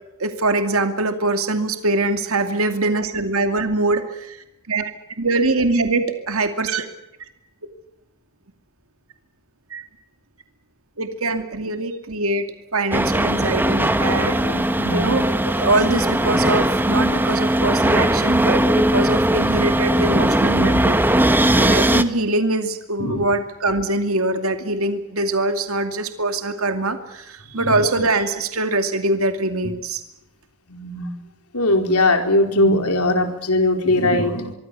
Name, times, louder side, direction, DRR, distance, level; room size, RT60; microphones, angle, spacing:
voice 1, 0.2-4.4 4.7-4.9 5.2-6.9 9.7-9.8 11.0-12.5 12.7-14.5 14.9-21.0 21.5-30.0, right 2 dB, 70° right, 7 dB, 2.5 m, -23 dB
sound 1, 12.9-22.0, right 1 dB, 10° right, 1.1 m, -19 dB
voice 2, 14.0-15.2 17.1-17.2 19.5-19.6 23.0-23.2 30.7-31.1 31.5-34.5, left 1 dB, 90° left, 5 dB, 4.5 m, -20 dB
24.5 x 24.0 x 6.9 m, 0.86 s
head